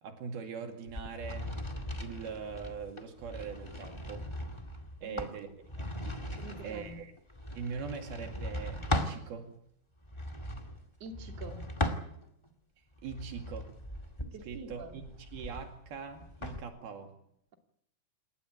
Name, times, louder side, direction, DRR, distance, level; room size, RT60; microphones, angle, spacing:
voice 1, 0.0-1.6 2.0-4.3 5.0-5.5 5.8-6.2 6.6-7.1 7.5-9.5 13.0-13.7 14.4-15.0 15.3-17.1, right 6 dB, 75° right, 5 dB, 4.2 m, -42 dB
sound 1, 0.9-9.2 10.0-12.5 13.0-16.6, left 1 dB, 15° left, 0.9 m, -38 dB
voice 2, 6.4-7.0 11.0-11.6 14.3-15.0, right 2 dB, 45° right, 3 dB, 3.6 m, -46 dB
28.0 x 14.5 x 9.4 m, 0.72 s
omnidirectional pair, 4.5 m